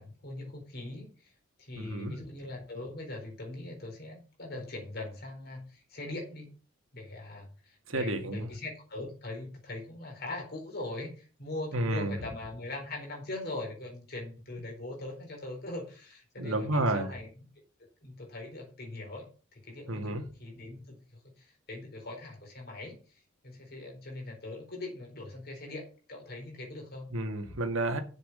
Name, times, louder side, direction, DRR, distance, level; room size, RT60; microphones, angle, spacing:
voice 1, 0.0-1.3 1.6-6.5 6.9-17.5 18.0-27.1, left 2 dB, 45° left, 4.4 m, -41 dB
voice 2, 1.8-2.1 7.9-8.5 11.7-12.2 16.4-17.1 19.9-20.2 27.1-28.0, right 1 dB, 70° right, 1.9 m, -30 dB
7.5 x 7.1 x 7.5 m
head